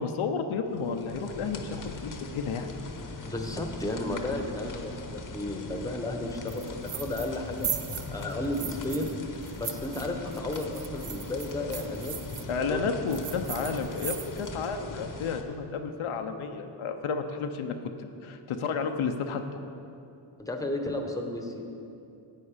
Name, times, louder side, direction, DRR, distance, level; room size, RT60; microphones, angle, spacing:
voice 1, 0.0-2.7 12.5-17.8 18.2-19.4, left 5 dB, 75° left, 6 dB, 0.8 m, -31 dB
sound 1, 0.7-15.4, left 3 dB, 40° left, 1.0 m, -40 dB
voice 2, 3.3-7.7 8.1-9.1 9.5-12.8 20.4-21.6, left 1 dB, 5° left, 4 dB, 1.1 m, -33 dB
sound 2, 6.5-7.4 7.6-9.1 9.4-12.4 13.1-14.5, right 8 dB, 45° right, 0.7 m, -37 dB
10.0 x 8.4 x 5.0 m, 2.7 s
cardioid pair, 90°, 49 cm